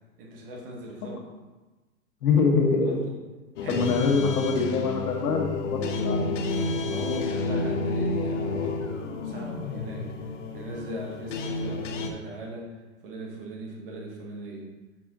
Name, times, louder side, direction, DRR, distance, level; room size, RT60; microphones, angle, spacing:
voice 1, 0.2-1.2 2.8-3.2 3.6-4.3 6.8-8.9 9.2-14.7, right 1 dB, 35° right, -1 dB, 1.1 m, -39 dB
voice 2, 2.2-3.0 3.7-6.5, left 4 dB, 80° left, 1 dB, 1.5 m, -24 dB
sound 1, 3.6-12.1, left 3 dB, 50° left, 0.6 m, -30 dB
6.8 x 4.9 x 2.9 m, 1.2 s
supercardioid pair, 180°, 45 cm